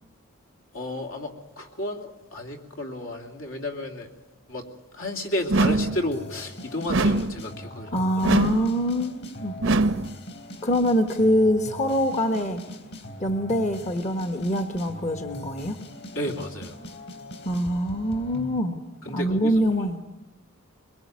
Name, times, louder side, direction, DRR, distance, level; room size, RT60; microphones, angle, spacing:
voice 1, 0.7-4.1 4.5-4.7 4.9-8.0 16.1-16.8 19.0-19.6, left 1 dB, 70° left, 4 dB, 3.0 m, -32 dB
sound 1, 5.5-6.0 6.9-7.4 8.2-8.7 9.6-10.1, right 2 dB, 65° right, 0.8 m, -22 dB
sound 2, 5.7-18.6, left 1 dB, 50° left, 3.6 m, -41 dB
voice 2, 7.9-9.8 10.6-12.6 13.2-15.8 17.4-18.8 19.1-20.0, equal, 35° left, 7 dB, 1.2 m, -24 dB
23.0 x 21.5 x 9.6 m, 1.0 s
head